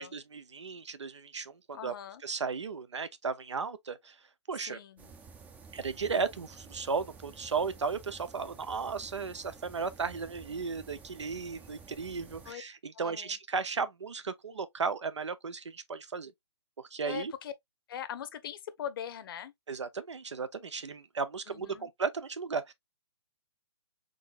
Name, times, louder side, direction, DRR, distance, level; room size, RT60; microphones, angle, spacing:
voice 1, 0.0-1.9 2.2-4.2 4.5-4.8 5.7-16.3 16.8-17.3 19.7-22.7, right 5 dB, 90° right, 0.8 m, -35 dB
voice 2, 1.7-2.2 4.6-5.1 12.4-12.6 12.9-13.4 17.0-17.5 17.9-19.5 21.5-21.9, left 9 dB, 50° left, 0.8 m, -41 dB
sound 1, 5.0-12.5, right 5 dB, 10° right, 0.5 m, -52 dB
3.9 x 3.6 x 2.4 m
hypercardioid pair, 140°, 14 cm